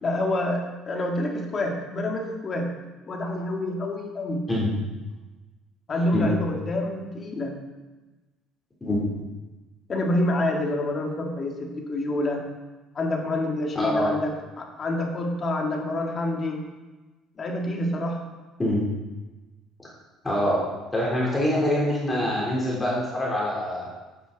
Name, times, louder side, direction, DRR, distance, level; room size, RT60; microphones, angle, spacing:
voice 1, 0.0-2.7 3.1-4.4 5.9-7.5 9.9-12.4 12.9-16.6 17.4-18.2, left 1 dB, 30° left, 1 dB, 2.0 m, -27 dB
voice 2, 13.7-14.1 18.6-18.8 19.8-19.9 20.2-20.6 20.9-23.8, left 1 dB, 15° left, -5 dB, 3.4 m, -24 dB
12.5 x 9.6 x 4.0 m, 1.2 s
cardioid pair, 130°, 0 cm